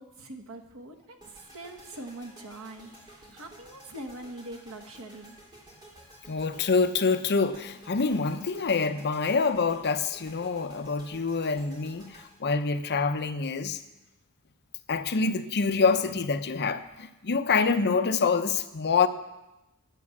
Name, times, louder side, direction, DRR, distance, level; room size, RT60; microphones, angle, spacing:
voice 1, 0.0-5.4, right 1 dB, 65° right, 3 dB, 1.5 m, -43 dB
sound 1, 1.2-13.4, right 1 dB, 20° right, 3.3 m, -52 dB
voice 2, 6.3-13.8 14.9-19.1, left 4 dB, 50° left, 9 dB, 0.7 m, -26 dB
11.0 x 8.4 x 7.2 m, 0.96 s
head